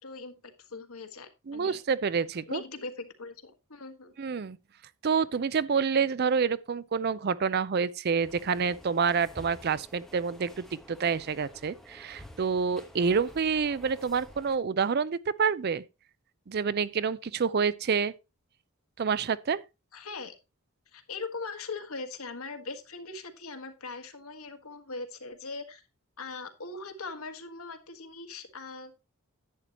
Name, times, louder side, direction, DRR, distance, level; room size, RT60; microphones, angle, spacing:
voice 1, 0.0-1.8 2.5-4.1 19.9-20.3 20.9-25.8 26.2-29.0, left 3 dB, 75° left, 1.6 m, -40 dB
voice 2, 1.5-2.6 4.2-4.6 5.0-15.8 16.5-18.1 19.0-19.6, right 5 dB, 45° right, 0.4 m, -28 dB
sound 1, 8.2-14.6, equal, ahead, 1.2 m, -50 dB
11.0 x 8.5 x 2.9 m
head